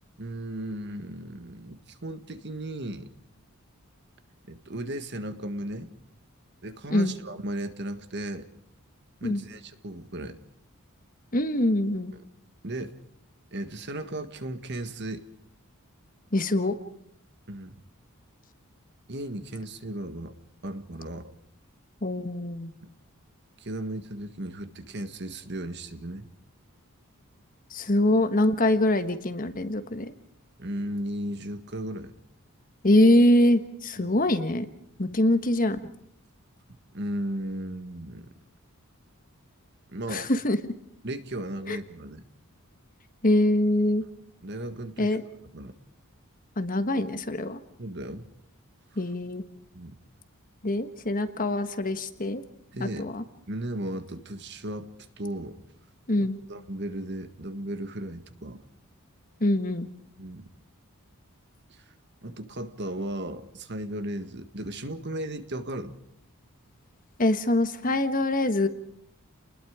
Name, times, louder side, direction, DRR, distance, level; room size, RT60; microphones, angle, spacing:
voice 1, 0.2-3.1 4.5-5.9 6.6-8.5 9.2-10.4 12.1-12.3 12.6-12.9 13.5-15.2 17.5-17.7 19.1-20.4 20.6-21.3 23.6-26.3 30.6-32.1 34.0-34.2 35.0-35.1 36.9-38.3 39.9-40.3 41.0-42.2 44.0-44.1 44.4-45.2 45.5-45.7 47.8-48.2 48.9-49.0 49.7-49.9 52.7-53.1 53.5-54.9 55.2-55.6 56.2-58.6 60.2-60.4 61.7-61.8 62.2-65.9, right 1 dB, 50° right, 10 dB, 1.6 m, -35 dB
voice 2, 11.3-12.1 16.3-16.7 22.0-22.7 27.7-30.1 32.8-34.7 35.0-35.8 40.1-40.6 41.7-41.8 43.2-44.0 45.0-45.2 46.6-47.6 49.0-49.4 50.6-52.4 52.8-53.2 56.1-56.4 59.4-59.9 67.2-68.7, left 1 dB, 40° left, 9 dB, 1.4 m, -24 dB
30.0 x 20.5 x 5.0 m, 0.70 s
head